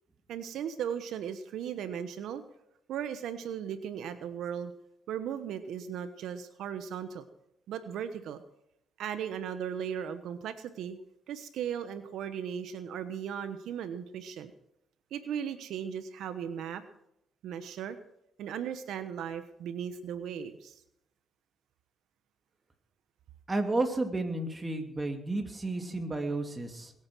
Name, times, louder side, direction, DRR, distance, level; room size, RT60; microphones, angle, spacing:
voice 1, 0.3-2.4 2.9-4.7 5.1-7.2 7.7-8.4 9.0-11.0 11.3-14.5 15.1-16.8 17.4-18.0 18.4-20.8, right 8 dB, 80° right, 10 dB, 1.1 m, -37 dB
voice 2, 23.5-26.9, right 2 dB, 20° right, 5 dB, 2.7 m, -32 dB
21.0 x 8.8 x 6.2 m, 0.78 s
cardioid pair, 90°, 0 cm